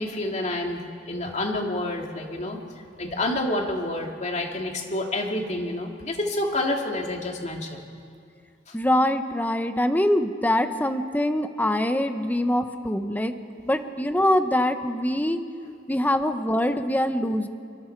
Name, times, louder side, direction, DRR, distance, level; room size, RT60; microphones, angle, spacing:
voice 1, 0.0-2.6 3.0-7.8 8.7-8.8, left 1 dB, 40° left, 1 dB, 2.4 m, -28 dB
voice 2, 8.7-13.3 13.6-15.4 15.9-17.5, left 1 dB, 10° left, 8 dB, 1.0 m, -24 dB
25.5 x 24.0 x 4.6 m, 2.3 s
head